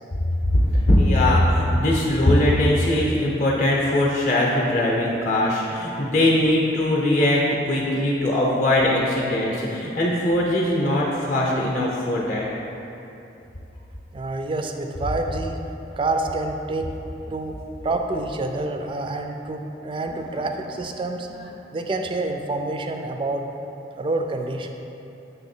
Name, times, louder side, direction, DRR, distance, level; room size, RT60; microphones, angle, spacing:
voice 1, 0.5-12.5, left 1 dB, 40° left, -3 dB, 0.6 m, -20 dB
voice 2, 14.1-15.6 16.0-16.9 17.3-17.5 17.8-21.3 21.7-23.4 24.0-24.7, right 2 dB, 30° right, 4 dB, 0.3 m, -27 dB
7.0 x 3.3 x 4.3 m, 2.9 s
head